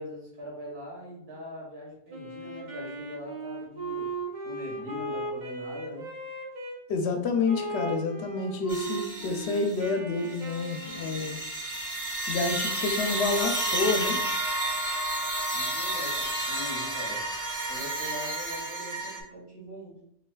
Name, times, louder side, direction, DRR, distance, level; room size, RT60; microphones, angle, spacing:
voice 1, 0.0-4.1 4.4-6.1 15.5-17.2 17.7-20.0, equal, 60° right, -4 dB, 1.8 m, -42 dB
Wind instrument woodwind instrument, 2.1-6.8 7.4-11.4, right 2 dB, 45° right, 1.0 m, -37 dB
voice 2, 6.9-11.4 12.3-14.2, left 4 dB, 70° left, 4 dB, 0.8 m, -29 dB
sound 1, 8.7-9.9 10.3-19.2, right 1 dB, 20° right, 0.7 m, -31 dB
5.6 x 2.7 x 2.3 m, 0.72 s
omnidirectional pair, 1.2 m